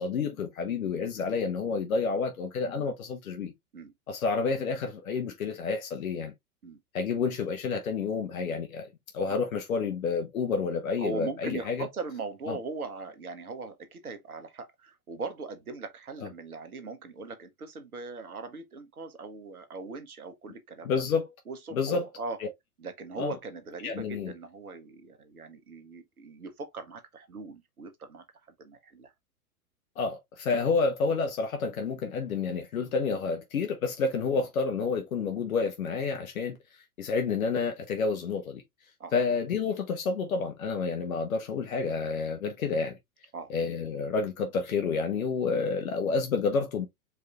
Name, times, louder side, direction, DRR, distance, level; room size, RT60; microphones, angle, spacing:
voice 1, 0.0-3.5 4.1-6.3 6.9-8.9 9.1-11.9 12.5-12.6 20.8-21.3 21.7-22.1 22.4-22.5 23.2-23.4 23.8-24.3 30.0-36.6 37.0-38.6 39.1-43.0 43.5-46.9, left 4 dB, 70° left, 1.1 m, -29 dB
voice 2, 11.0-20.9 21.5-22.4 22.8-28.2 28.6-29.1 39.0-39.1 43.3-43.5, right 3 dB, 80° right, 1.2 m, -40 dB
4.7 x 2.6 x 3.2 m
figure-of-eight pair, 100°, 43 cm